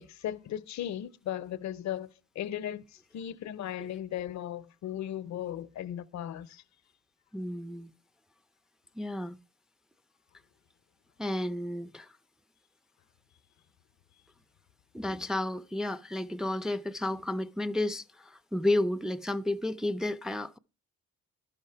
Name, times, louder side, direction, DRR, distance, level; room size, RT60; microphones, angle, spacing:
voice 1, 0.0-6.6, left 11 dB, 65° left, 0.7 m, -37 dB
voice 2, 7.3-7.9 9.0-9.4 11.2-12.1 14.9-20.6, left 1 dB, ahead, 0.4 m, -32 dB
12.0 x 5.8 x 5.5 m
cardioid pair, 90°, 30 cm